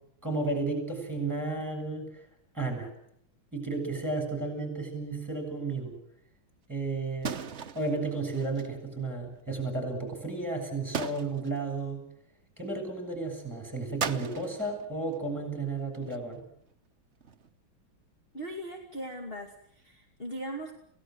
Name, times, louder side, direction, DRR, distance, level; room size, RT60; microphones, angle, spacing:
voice 1, 0.2-2.2 2.5-2.9 3.5-5.9 6.7-7.5 7.7-12.0 12.6-16.4, right 3 dB, 10° right, 5 dB, 7.5 m, -33 dB
sound 1, 7.2-8.7 10.0-10.4 10.9-11.8 14.0-15.3 15.7-16.4 17.2-17.5, right 6 dB, 40° right, 1.0 m, -38 dB
voice 2, 18.3-20.7, right 1 dB, 25° left, 2 dB, 2.7 m, -39 dB
29.0 x 17.5 x 8.0 m, 0.71 s
omnidirectional pair, 2.3 m